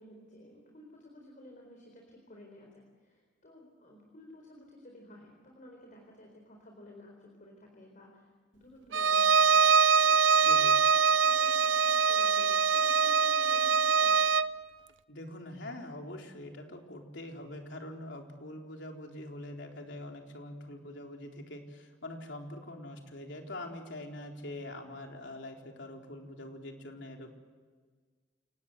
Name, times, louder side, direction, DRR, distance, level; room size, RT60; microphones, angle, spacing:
voice 1, 0.0-9.6 10.1-10.7 11.2-14.2, left 1 dB, 45° left, 1 dB, 4.2 m, -54 dB
Bowed string instrument, 8.9-14.5, right 5 dB, 85° right, 0.6 m, -24 dB
voice 2, 10.4-10.8 15.1-27.3, left 1 dB, 70° left, 2 dB, 3.9 m, -44 dB
29.0 x 19.0 x 8.1 m, 1.5 s
head